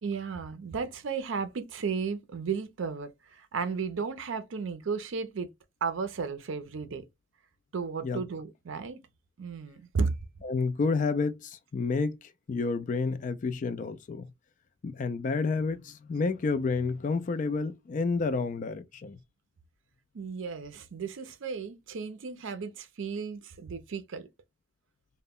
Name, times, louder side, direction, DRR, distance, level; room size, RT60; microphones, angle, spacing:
voice 1, 0.0-5.5 5.8-7.1 7.7-9.0 9.4-10.1 20.1-24.3, right 5 dB, 70° right, 0.5 m, -34 dB
voice 2, 10.4-14.3 14.8-19.2, left 4 dB, 40° left, 0.3 m, -30 dB
2.1 x 2.1 x 3.5 m
head